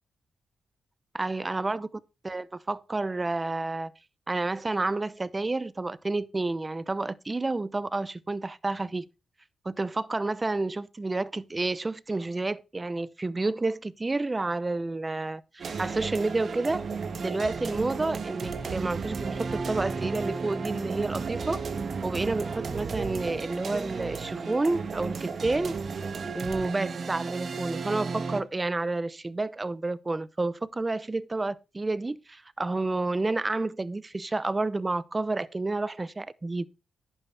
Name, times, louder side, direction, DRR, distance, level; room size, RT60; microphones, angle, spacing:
voice 1, 1.2-1.9 2.2-3.9 4.3-9.1 9.6-16.8 17.2-21.6 22.0-25.8 26.3-36.7, right 2 dB, 25° right, 0.8 m, -30 dB
sound 1, 15.6-28.4, right 5 dB, 60° right, 1.4 m, -34 dB
11.0 x 9.1 x 3.5 m
cardioid pair, 70°, 0 cm